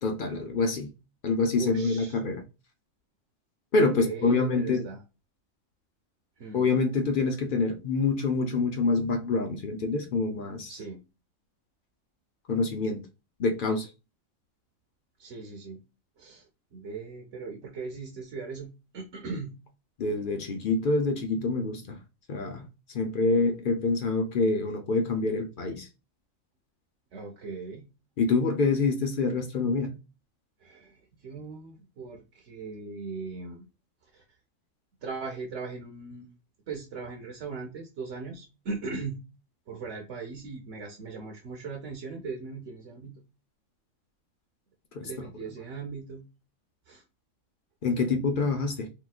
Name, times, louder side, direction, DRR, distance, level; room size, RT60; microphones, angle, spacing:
voice 1, 0.0-0.9 1.2-2.4 3.7-4.8 6.5-10.7 12.5-13.0 13.4-13.9 20.0-22.0 22.3-22.7 22.9-25.9 28.2-30.0 44.9-45.3 47.8-48.9, left 3 dB, 55° left, 0.6 m, -26 dB
voice 2, 1.6-2.2 4.0-5.0 6.4-6.6 10.7-11.0 15.2-15.8 16.2-16.4 16.7-19.5 27.1-27.9 30.6-33.6 34.1-34.2 35.0-36.3 36.7-39.2 39.7-43.1 45.0-46.2 46.9-47.0 48.0-48.1, right 4 dB, 60° right, 1.0 m, -39 dB
3.5 x 2.8 x 2.3 m
omnidirectional pair, 1.4 m